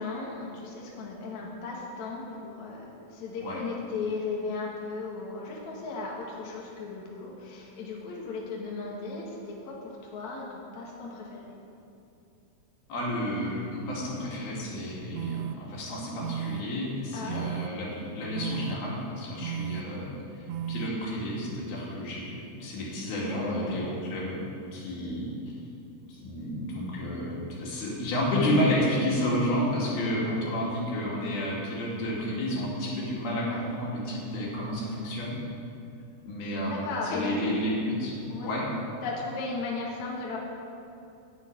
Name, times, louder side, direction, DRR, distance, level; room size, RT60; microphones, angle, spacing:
voice 1, 0.0-11.5 17.1-17.4 23.2-23.8 31.2-31.3 33.3-33.6 36.6-37.5 38.3-38.5 39.0-40.4, left 3 dB, 60° left, -3 dB, 2.3 m, -36 dB
voice 2, 12.9-24.4 24.7-25.4 26.1-35.4 36.2-38.1 38.4-38.6, left 1 dB, 75° left, -5 dB, 4.2 m, -31 dB
sound 1, 15.1-15.5 16.2-16.6 17.3-17.7 18.3-18.7 19.4-19.8 20.5-20.9, right 10 dB, 85° right, 2.6 m, -33 dB
11.0 x 6.6 x 8.7 m, 2.6 s
omnidirectional pair, 4.6 m